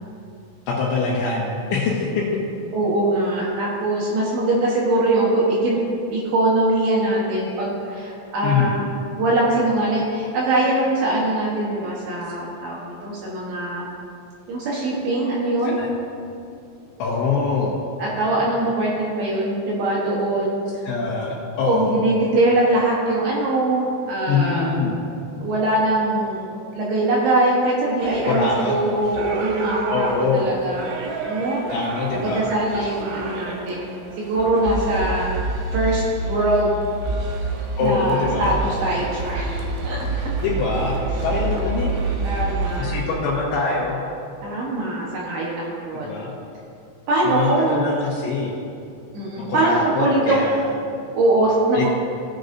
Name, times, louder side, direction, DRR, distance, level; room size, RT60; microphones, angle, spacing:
voice 1, 0.7-2.4 8.4-8.8 15.6-15.9 17.0-17.7 20.8-21.9 24.3-25.0 28.3-28.7 29.9-30.4 31.7-32.4 37.8-38.5 40.4-41.0 41.2-42.0 42.8-44.0 45.9-46.3 47.2-48.5 49.5-50.6 51.7-51.9, left 4 dB, 75° left, -5 dB, 3.2 m, -23 dB
voice 2, 2.7-5.8 6.1-8.9 9.2-13.9 14.5-15.8 18.0-20.6 21.6-24.7 25.4-30.9 31.3-31.6 32.1-36.8 37.8-39.6 39.8-40.3 41.5-41.7 42.2-43.0 44.4-46.2 47.1-47.9 49.1-50.4 51.1-51.9, right 2 dB, 70° right, -4 dB, 2.7 m, -22 dB
sound 1, 28.0-42.8, right 3 dB, 90° right, 2.1 m, -28 dB
17.0 x 7.8 x 2.6 m, 2.5 s
omnidirectional pair, 5.7 m